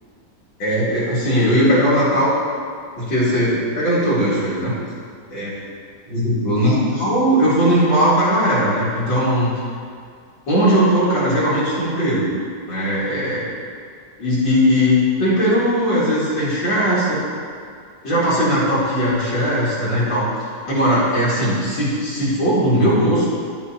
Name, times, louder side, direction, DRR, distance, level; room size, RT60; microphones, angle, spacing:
voice 1, 0.6-2.3 3.0-4.7 5.3-5.5 6.1-9.5 10.5-12.3 12.7-13.5 14.2-17.2 18.0-20.3 20.7-23.3, equal, 75° left, -10 dB, 2.8 m, -18 dB
13.0 x 5.4 x 2.9 m, 2.1 s
omnidirectional pair, 2.0 m